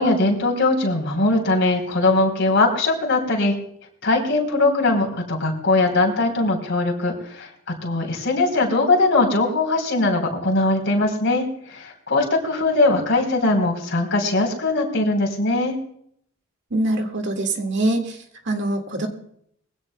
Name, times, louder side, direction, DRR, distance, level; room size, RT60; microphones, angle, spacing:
voice 1, 0.0-3.5 4.0-7.5 7.8-15.8, left 2 dB, 55° left, 1 dB, 3.7 m, -20 dB
voice 2, 16.7-18.2 18.5-19.1, right 1 dB, 55° right, 4 dB, 1.9 m, -23 dB
22.5 x 16.5 x 2.2 m, 0.69 s
head